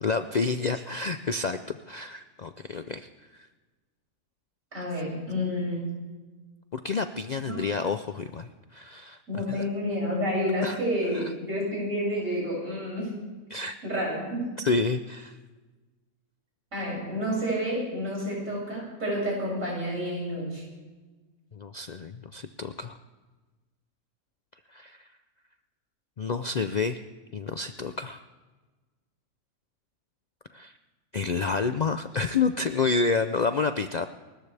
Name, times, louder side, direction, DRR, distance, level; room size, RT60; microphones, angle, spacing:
voice 1, 0.0-3.1 6.7-9.2 9.5-9.6 10.6-10.8 11.1-11.2 13.5-13.8 14.6-15.4 21.5-23.0 24.7-25.1 26.2-27.0 27.3-28.2 30.5-30.7 31.1-34.1, left 4 dB, 90° left, 9 dB, 0.3 m, -29 dB
voice 2, 4.7-5.9 7.4-7.6 9.3-13.1 13.8-14.5 16.7-20.6, equal, 60° right, -5 dB, 7.5 m, -29 dB
29.5 x 14.0 x 3.4 m, 1.3 s
omnidirectional pair, 1.5 m